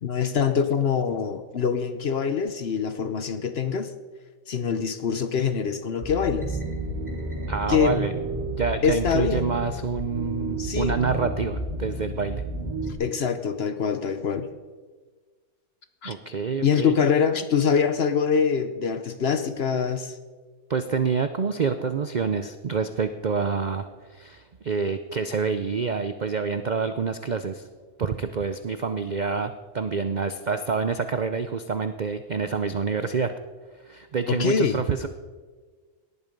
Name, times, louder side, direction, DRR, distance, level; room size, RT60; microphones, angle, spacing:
voice 1, 0.0-3.9 4.5-6.6 7.7-7.9 8.8-9.5 10.6-11.0 13.0-14.5 16.0-16.1 16.6-20.2 34.3-34.8, left 6 dB, 50° left, 10 dB, 0.8 m, -24 dB
sound 1, 6.0-12.9, right 1 dB, 15° right, 3.5 m, -31 dB
voice 2, 7.5-8.1 8.5-12.4 16.0-16.9 20.7-27.7 28.0-33.3 33.9-35.1, right 5 dB, 70° right, 10 dB, 0.4 m, -27 dB
18.0 x 10.5 x 5.2 m, 1.4 s
omnidirectional pair, 1.6 m